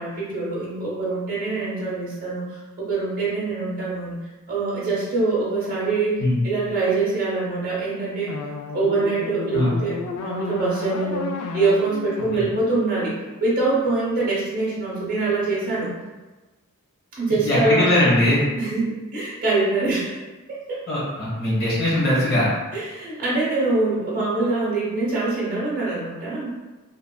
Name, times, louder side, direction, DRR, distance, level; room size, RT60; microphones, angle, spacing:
voice 1, 0.0-4.2 4.5-8.3 8.7-13.1 13.4-15.9 17.2-17.9 18.6-20.1 20.5-20.8 22.7-26.5, right 3 dB, 40° right, -7 dB, 0.7 m, -24 dB
sound 1, 8.3-13.4, left 4 dB, 80° left, 0.3 m, -33 dB
voice 2, 17.4-18.4 20.9-22.5, left 1 dB, 45° left, -8 dB, 1.2 m, -20 dB
2.9 x 2.4 x 2.2 m, 1.2 s
head